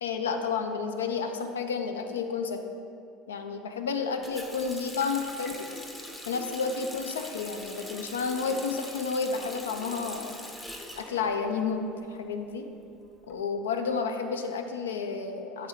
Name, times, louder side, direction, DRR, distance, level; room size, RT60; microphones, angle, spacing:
voice 1, 0.0-2.6 3.3-5.7 6.3-10.4 11.0-12.7 13.3-15.7, left 5 dB, 75° left, 6 dB, 0.4 m, -31 dB
Water tap faucet, 4.2-12.0 12.3-13.3, equal, 10° left, 0.7 m, -43 dB
8.5 x 3.5 x 3.4 m, 2.5 s
figure-of-eight pair, 70°, 0 cm